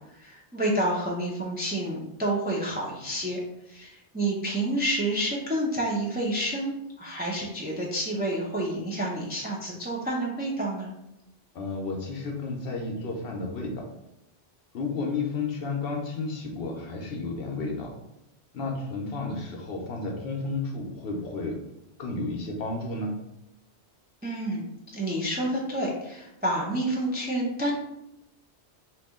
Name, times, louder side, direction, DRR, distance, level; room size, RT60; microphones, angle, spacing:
voice 1, 0.1-3.4 3.7-10.9 24.2-24.6 24.9-27.7, right 1 dB, 15° right, -3 dB, 0.3 m, -29 dB
voice 2, 11.5-13.9 14.7-17.9 18.5-21.6 22.0-23.2, left 3 dB, 60° left, 1 dB, 0.8 m, -32 dB
2.9 x 2.7 x 3.5 m, 0.87 s
omnidirectional pair, 1.2 m